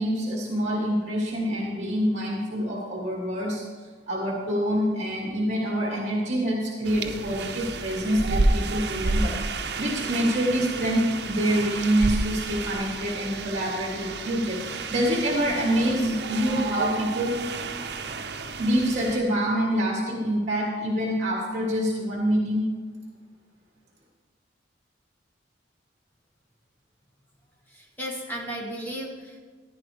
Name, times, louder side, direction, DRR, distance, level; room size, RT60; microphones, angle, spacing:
voice 1, 0.0-17.4 18.6-22.7, equal, 40° right, -2 dB, 1.8 m, -26 dB
sound 1, 6.8-19.2, right 3 dB, 65° right, 0.7 m, -30 dB
voice 2, 27.7-29.4, equal, 10° left, -2 dB, 2.0 m, -35 dB
15.0 x 10.5 x 3.4 m, 1.5 s
head